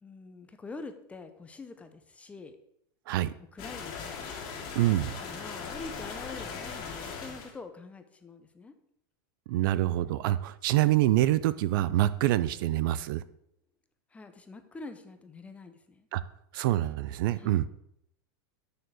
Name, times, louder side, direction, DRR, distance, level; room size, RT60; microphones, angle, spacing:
voice 1, 0.0-2.6 3.5-4.3 5.2-8.7 14.1-16.1 17.4-17.6, left 3 dB, 10° left, 8 dB, 0.9 m, -45 dB
sound 1, 3.6-7.5, left 5 dB, 40° left, 2.4 m, -39 dB
voice 2, 4.7-5.2 9.5-13.2 16.1-16.2 16.5-17.7, right 14 dB, 65° right, 16 dB, 0.5 m, -26 dB
6.8 x 6.6 x 7.7 m, 0.75 s
supercardioid pair, 150°, 12 cm